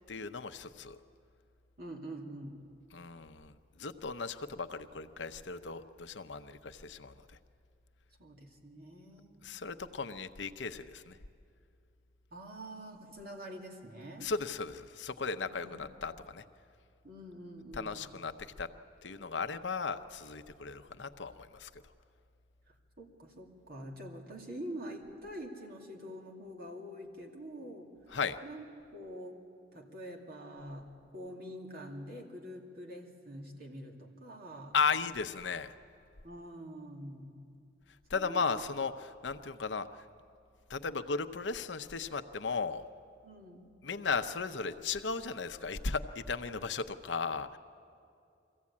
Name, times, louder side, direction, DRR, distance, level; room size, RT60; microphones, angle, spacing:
voice 1, 0.1-1.0 2.9-3.5 3.8-7.1 9.4-11.2 14.2-16.4 17.7-18.7 19.0-21.7 28.1-28.4 34.7-35.7 38.1-39.9 40.7-42.8 43.8-47.6, left 5 dB, 80° left, 9 dB, 0.8 m, -36 dB
voice 2, 1.8-2.6 8.2-9.5 12.3-14.3 15.5-15.9 17.0-18.1 22.7-27.9 28.4-28.6 28.9-29.4 29.7-34.8 36.2-37.4 38.1-38.6 43.2-43.7, equal, 55° right, 0 dB, 2.6 m, -46 dB
23.5 x 15.5 x 8.5 m, 2.5 s
head